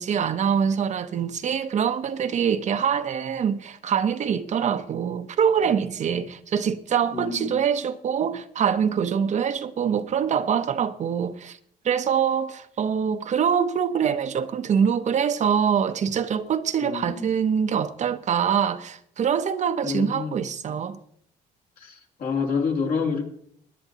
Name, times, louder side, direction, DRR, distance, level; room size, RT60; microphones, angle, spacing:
voice 1, 0.0-11.6 11.8-21.0, right 7 dB, 45° right, 0.8 m, -24 dB
voice 2, 7.1-7.6 16.8-17.3 19.8-20.4 21.8-23.3, left 5 dB, 60° left, 2.8 m, -28 dB
22.0 x 10.0 x 2.9 m
cardioid pair, 110°, 17 cm